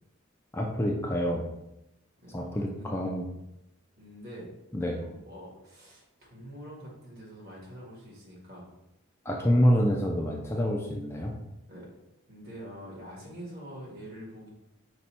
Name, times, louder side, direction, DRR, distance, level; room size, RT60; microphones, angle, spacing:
voice 1, 0.5-1.5 2.3-3.2 4.7-5.0 9.3-11.3, equal, 10° left, -1 dB, 0.4 m, -27 dB
voice 2, 2.2-3.0 4.0-4.5 5.0-8.7 11.7-11.9 12.3-14.5, equal, 50° right, -4 dB, 1.7 m, -45 dB
5.2 x 2.3 x 4.3 m, 0.88 s
head